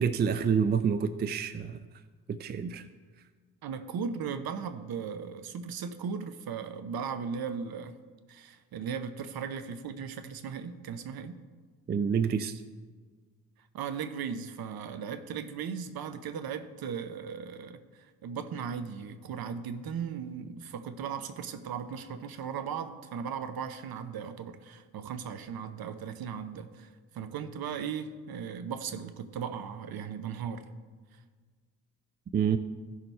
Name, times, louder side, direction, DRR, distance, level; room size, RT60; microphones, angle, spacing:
voice 1, 0.0-1.8 2.3-2.9 11.9-12.6 32.3-32.6, right 7 dB, 20° right, 12 dB, 0.4 m, -28 dB
voice 2, 3.6-8.0 8.3-11.4 13.7-26.9 27.1-30.7, right 7 dB, 50° right, 11 dB, 0.9 m, -37 dB
15.5 x 6.0 x 3.4 m, 1.5 s
hypercardioid pair, 45°, 47 cm